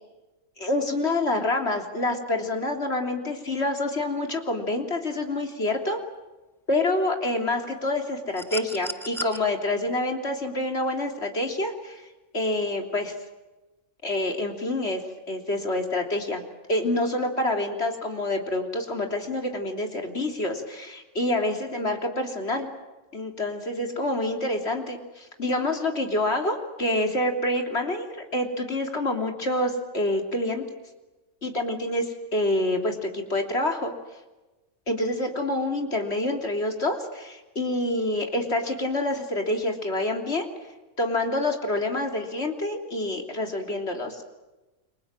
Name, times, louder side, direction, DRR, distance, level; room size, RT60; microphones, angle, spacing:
voice 1, 0.6-6.0 6.7-12.0 12.3-13.1 14.0-16.4 16.7-22.7 23.1-30.7 31.4-33.9 34.9-40.5 41.0-44.2, left 1 dB, 60° left, 3 dB, 3.6 m, -27 dB
sound 1, 8.3-9.4 10.9-11.0, right 1 dB, ahead, 0.8 m, -35 dB
29.5 x 23.5 x 7.6 m, 1.1 s
omnidirectional pair, 1.2 m